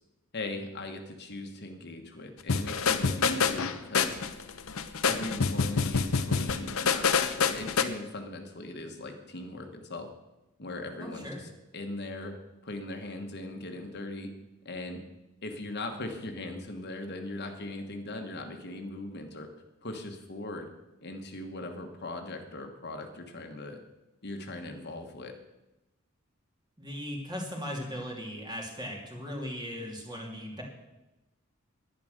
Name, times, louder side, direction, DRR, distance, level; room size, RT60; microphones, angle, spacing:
voice 1, 0.3-4.2 5.0-10.1 10.6-12.4 12.6-14.3 14.6-15.0 15.4-19.5 19.8-20.7 21.0-23.8 24.2-25.3, left 2 dB, 50° left, 4 dB, 1.4 m, -39 dB
sound 1, 2.5-7.8, left 5 dB, 85° left, 0.8 m, -27 dB
voice 2, 11.0-11.5 26.8-30.6, equal, 20° right, 0 dB, 2.8 m, -38 dB
11.0 x 10.5 x 6.5 m, 0.99 s
head